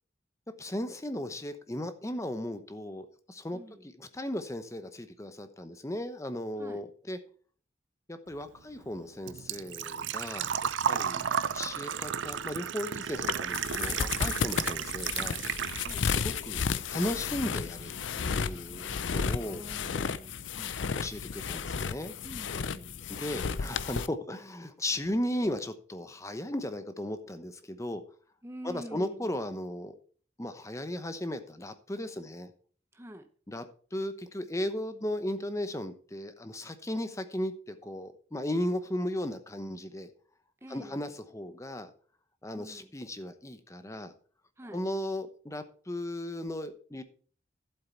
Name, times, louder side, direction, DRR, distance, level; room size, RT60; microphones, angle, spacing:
voice 1, 0.6-7.2 8.1-10.5 10.9-15.4 16.0-19.6 20.9-22.1 23.1-28.0 28.6-30.0 30.4-32.5 33.5-40.1 40.7-41.9 42.4-44.1 44.7-47.0, left 1 dB, 15° left, 10 dB, 0.8 m, -36 dB
voice 2, 3.5-3.9 6.6-6.8 10.8-11.1 15.8-16.1 19.4-20.8 22.2-23.0 28.4-29.4 32.9-33.3 40.6-41.0 42.6-42.9 44.6-44.8, equal, 15° right, 6 dB, 0.8 m, -46 dB
Engine / Trickle dribble / Fill (with liquid), 8.3-16.3 16.6-17.6 17.9-18.0 19.9-20.0 20.1-20.5 20.9-21.0 21.2-21.3, right 8 dB, 85° right, 0.5 m, -33 dB
sound 1, 13.2-24.1, left 6 dB, 90° left, 0.6 m, -33 dB
11.5 x 8.0 x 4.4 m, 0.43 s
head